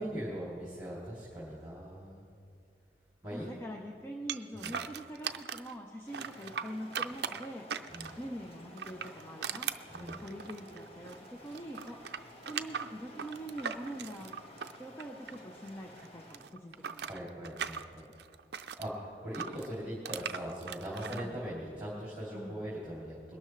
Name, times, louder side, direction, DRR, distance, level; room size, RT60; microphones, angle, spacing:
voice 1, 0.0-2.2 3.2-3.5 4.5-4.7 7.9-8.1 9.9-10.2 17.0-18.0 18.8-23.4, equal, 10° right, -8 dB, 3.0 m, -40 dB
voice 2, 3.3-7.7 8.2-9.7 10.0-12.2 12.4-14.3 14.8-17.1 18.1-18.2 21.1-21.4 22.3-22.6, equal, 15° left, 0 dB, 0.7 m, -44 dB
sound 1, 4.3-5.7 6.1-8.3 8.7-11.3 11.5-15.7 16.0-18.9 19.3-21.2, right 7 dB, 65° right, 0.5 m, -39 dB
sound 2, 6.1-16.4, equal, 35° left, 1.4 m, -53 dB
21.5 x 12.5 x 3.2 m, 2.4 s
head